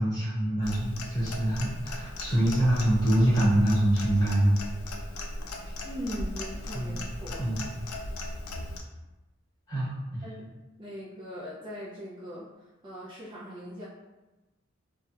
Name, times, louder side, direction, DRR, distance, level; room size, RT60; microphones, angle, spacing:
voice 1, 0.0-4.6 6.7-7.0 7.4-7.7 9.7-10.2, right 1 dB, 20° left, -9 dB, 1.1 m, -25 dB
Clock, 0.6-8.8, left 1 dB, 85° left, 0.3 m, -37 dB
voice 2, 5.8-7.5 10.2-10.5 10.8-13.9, equal, 25° right, -7 dB, 0.3 m, -40 dB
2.7 x 2.0 x 2.3 m, 1.1 s
head